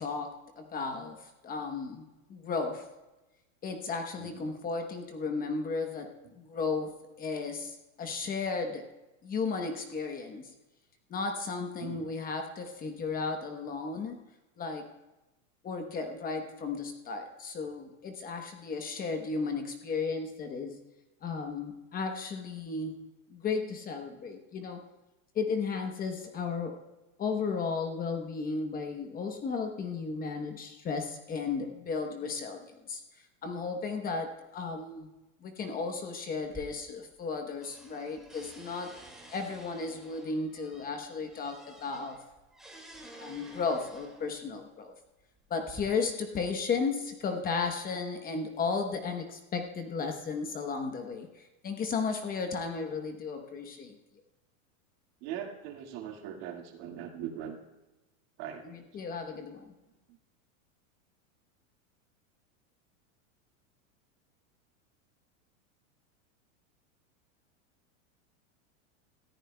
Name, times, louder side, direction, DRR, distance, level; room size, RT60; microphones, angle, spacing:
voice 1, 0.0-2.9 3.6-8.9 9.2-10.5 11.1-14.2 14.6-14.9 15.6-20.8 21.2-23.0 23.3-24.8 25.3-26.8 27.2-33.0 33.4-35.1 35.4-38.9 39.3-42.2 43.2-44.9 45.5-53.9 58.6-59.6, left 4 dB, 20° left, 5 dB, 0.9 m, -34 dB
voice 2, 4.2-4.5 11.8-12.1 55.2-57.6 58.4-58.8, right 9 dB, 50° right, 3 dB, 2.0 m, -40 dB
sound 1, 36.4-37.3 37.6-44.4 45.2-45.8, right 2 dB, ahead, 2.1 m, -51 dB
20.0 x 14.0 x 2.2 m, 1.0 s
supercardioid pair, 150°, 41 cm